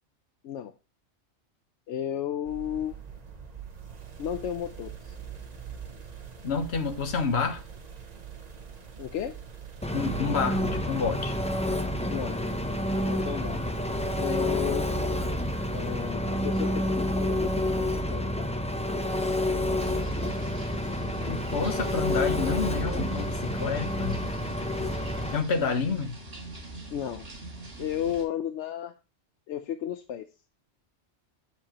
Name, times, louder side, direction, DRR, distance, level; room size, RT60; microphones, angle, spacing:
voice 1, 1.9-3.0 4.2-5.1 9.0-9.4 12.1-12.4 13.0-13.6 14.2-14.9 15.7-18.8 26.9-27.2 27.8-28.9 29.5-30.2, left 10 dB, 80° left, 1.0 m, -33 dB
sound 1, 2.4-16.1, right 7 dB, 40° right, 0.9 m, -44 dB
voice 2, 6.4-7.6 9.9-11.3 21.3-24.2 25.3-26.1, left 5 dB, 65° left, 1.2 m, -29 dB
Engine, 9.8-25.4, left 1 dB, 10° left, 0.3 m, -29 dB
sound 2, 19.8-28.2, right 2 dB, 80° right, 2.8 m, -43 dB
7.2 x 7.0 x 2.9 m
omnidirectional pair, 1.2 m